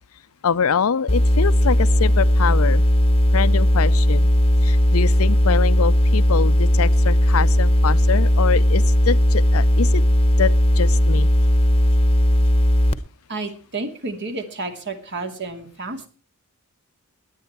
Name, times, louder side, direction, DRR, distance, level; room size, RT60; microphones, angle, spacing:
voice 1, 0.4-2.8 3.3-4.3 4.6-10.0 10.4-11.3, left 6 dB, 75° left, 0.6 m, -24 dB
sound 1, 1.1-12.9, equal, 25° left, 1.0 m, -17 dB
voice 2, 13.3-16.1, right 3 dB, 55° right, 2.5 m, -31 dB
18.0 x 10.5 x 4.5 m
head